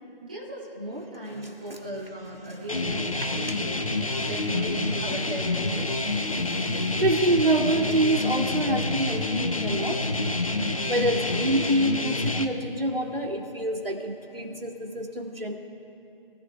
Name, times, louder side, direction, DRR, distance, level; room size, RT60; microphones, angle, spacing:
voice 1, 0.2-3.7 4.2-5.6, right 1 dB, 10° right, -8 dB, 0.9 m, -37 dB
voice 2, 1.2-1.8 2.4-4.3 6.0-10.0 10.9-15.6, right 1 dB, 70° right, 0 dB, 2.7 m, -28 dB
sound 1, 2.7-12.5, left 2 dB, 35° left, 0.7 m, -28 dB
23.5 x 15.0 x 2.4 m, 2.8 s
figure-of-eight pair, 160°, 30 cm